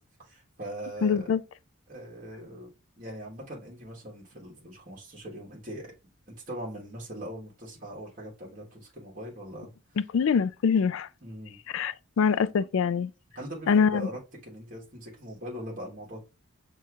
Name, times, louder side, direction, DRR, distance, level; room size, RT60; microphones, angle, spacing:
voice 1, 0.2-1.3 1.9-2.7 3.0-5.9 6.5-9.7 11.2-11.6 13.3-16.2, equal, 40° right, 1.3 m, -41 dB
voice 2, 1.0-1.4 10.1-11.1 11.7-13.1 13.7-14.1, left 6 dB, 65° left, 0.3 m, -24 dB
6.3 x 2.8 x 2.4 m
head